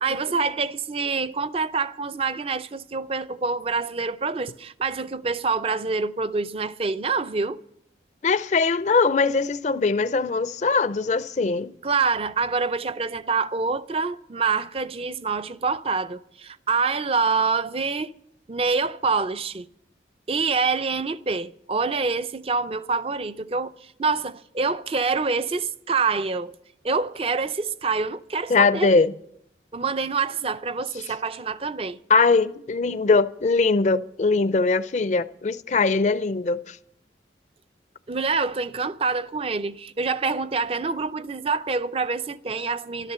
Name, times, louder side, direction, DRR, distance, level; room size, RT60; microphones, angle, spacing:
voice 1, 0.0-7.6 11.8-18.1 18.5-19.7 20.3-26.5 26.8-28.9 29.7-32.0 38.1-43.1, right 4 dB, 30° right, 0.4 m, -26 dB
voice 2, 8.2-11.7 28.5-29.1 32.1-36.8, left 4 dB, 40° left, 0.4 m, -21 dB
12.5 x 12.0 x 6.8 m
head